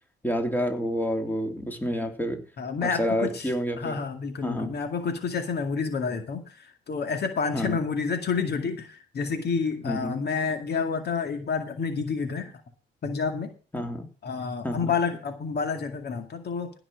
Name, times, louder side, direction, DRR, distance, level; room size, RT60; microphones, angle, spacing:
voice 1, 0.2-2.4 2.8-4.0 4.4-4.8 7.5-7.8 9.8-10.2 13.7-14.1 14.6-14.9, equal, 10° left, 3.2 m, -29 dB
voice 2, 2.6-3.5 3.8-12.6 13.0-13.5 14.2-16.7, left 5 dB, 55° left, 2.2 m, -29 dB
15.5 x 6.1 x 6.5 m
cardioid pair, 90°, 20 cm